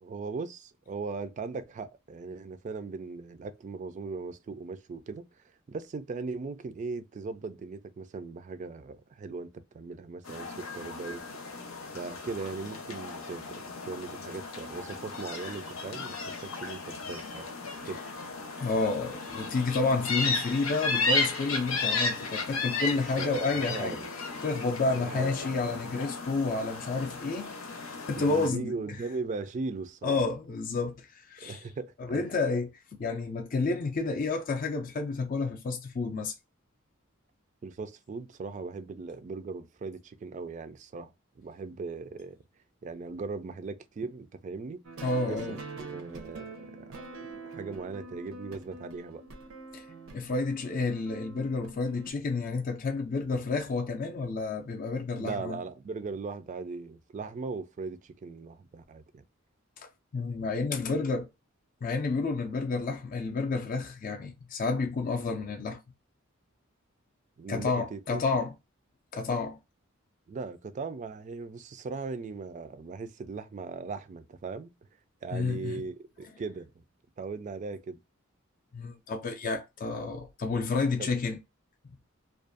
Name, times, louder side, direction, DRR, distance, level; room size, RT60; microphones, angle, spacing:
voice 1, 0.0-5.3 5.7-11.4 11.9-17.5 17.8-18.0 22.9-24.1 25.0-25.7 28.1-30.2 31.4-32.2 37.6-42.4 42.8-44.8 45.3-47.0 47.4-49.2 55.2-59.2 67.4-68.2 70.3-74.7 75.2-76.8 77.2-78.0 81.0-81.1, right 4 dB, 35° right, 0.3 m, -39 dB
sound 1, 10.2-28.5, left 3 dB, 90° left, 0.7 m, -34 dB
voice 2, 18.6-24.0 24.4-27.5 28.1-28.8 30.0-31.6 32.0-36.3 45.0-45.6 49.7-49.8 50.1-55.6 60.1-61.3 61.8-65.8 67.5-68.5 69.1-69.6 75.3-75.8 78.7-81.4, left 3 dB, 40° left, 0.4 m, -30 dB
sound 2, 44.8-52.1, right 3 dB, 85° right, 0.6 m, -45 dB
2.5 x 2.3 x 2.4 m
head